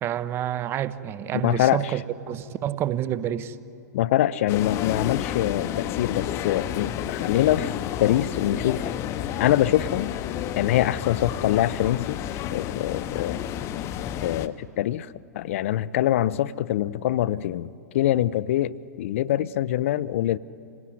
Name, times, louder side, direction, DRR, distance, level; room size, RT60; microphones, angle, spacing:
voice 1, 0.0-2.0 2.3-3.6, right 11 dB, 25° right, 16 dB, 0.8 m, -28 dB
voice 2, 1.4-1.9 3.9-8.9 9.4-10.1 10.6-12.2 12.5-13.4 14.2-20.4, left 13 dB, 45° left, 19 dB, 0.5 m, -24 dB
sound 1, 4.5-14.5, left 11 dB, 30° left, 0.8 m, -30 dB
26.5 x 17.5 x 9.8 m, 2.7 s
figure-of-eight pair, 105°, 10 cm